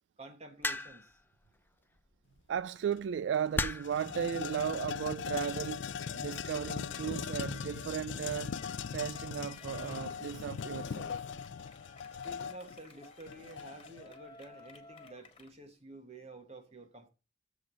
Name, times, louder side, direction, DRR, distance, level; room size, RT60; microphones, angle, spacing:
voice 1, 0.2-1.2 12.2-17.1, right 2 dB, 35° right, 1.4 m, -50 dB
sound 1, 0.6-1.2 2.4-2.6 3.6-4.0 5.0-5.3, left 2 dB, 10° left, 0.5 m, -34 dB
voice 2, 2.5-8.6 8.9-11.1, right 8 dB, 80° right, 0.3 m, -35 dB
sound 2, 2.9-3.0 3.3-14.0, left 6 dB, 80° left, 0.4 m, -40 dB
Yell, 5.8-15.5, left 4 dB, 30° left, 1.7 m, -57 dB
7.4 x 4.9 x 6.1 m
head